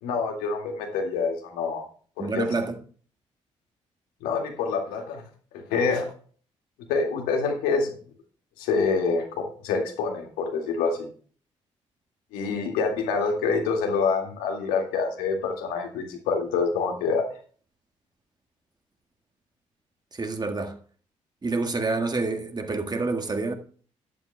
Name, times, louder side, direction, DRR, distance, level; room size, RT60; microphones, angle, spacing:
voice 1, 0.0-1.8 2.2-2.5 4.2-5.2 5.5-6.1 6.9-7.9 8.6-11.1 12.3-17.2, left 4 dB, 65° left, 2.2 m, -26 dB
voice 2, 2.2-2.8 20.1-20.8 21.4-23.5, right 3 dB, 25° right, 1.7 m, -28 dB
14.0 x 11.0 x 2.3 m
figure-of-eight pair, 40°, 16 cm